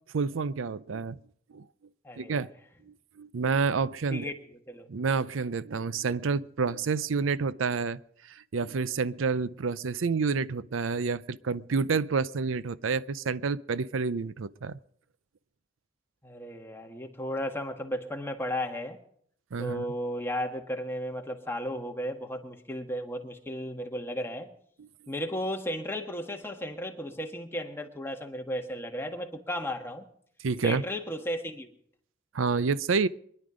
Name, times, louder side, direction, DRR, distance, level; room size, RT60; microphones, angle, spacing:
voice 1, 0.1-1.2 1.5-1.7 2.2-2.5 2.9-4.3 4.9-14.8 19.5-19.9 24.8-24.9 30.4-30.8 32.3-33.1, right 5 dB, 85° right, 0.5 m, -29 dB
voice 2, 2.0-2.5 4.1-4.9 16.2-19.0 19.6-24.5 25.1-30.1 30.6-31.7, equal, 10° left, 1.6 m, -34 dB
24.0 x 11.0 x 5.0 m
head